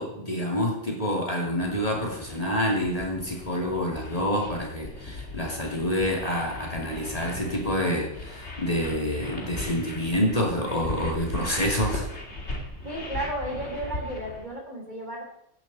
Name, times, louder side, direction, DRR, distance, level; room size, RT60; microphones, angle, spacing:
voice 1, 0.0-12.1, equal, 30° left, -2 dB, 2.9 m, -27 dB
sound 1, 1.5-14.4, left 2 dB, 65° left, 2.8 m, -38 dB
voice 2, 12.8-15.2, right 1 dB, 40° right, 0 dB, 3.5 m, -33 dB
16.5 x 11.0 x 4.2 m, 0.76 s
omnidirectional pair, 1.2 m